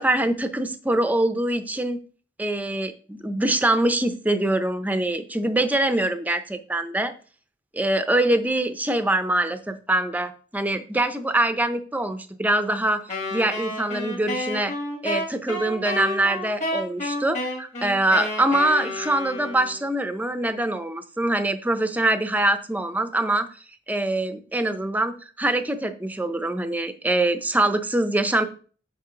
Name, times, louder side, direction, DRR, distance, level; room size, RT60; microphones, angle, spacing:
voice 1, 0.0-2.0 2.4-7.1 7.7-13.0 13.3-14.7 15.0-23.5 23.9-28.5, right 1 dB, 10° right, 9 dB, 0.6 m, -24 dB
Wind instrument woodwind instrument, 13.1-19.9, left 1 dB, 40° left, 2.3 m, -30 dB
8.8 x 2.9 x 5.7 m, 0.39 s
head